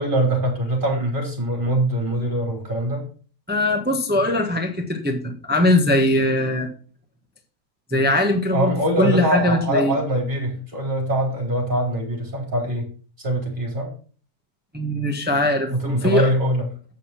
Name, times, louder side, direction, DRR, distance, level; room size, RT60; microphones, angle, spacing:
voice 1, 0.0-3.0 8.5-12.9 13.2-13.9 15.7-16.7, right 1 dB, 30° right, 0 dB, 4.3 m, -23 dB
voice 2, 3.5-6.7 7.9-10.0 14.7-16.3, left 1 dB, 5° right, 4 dB, 1.1 m, -21 dB
8.5 x 6.7 x 5.9 m, 0.41 s
omnidirectional pair, 1.7 m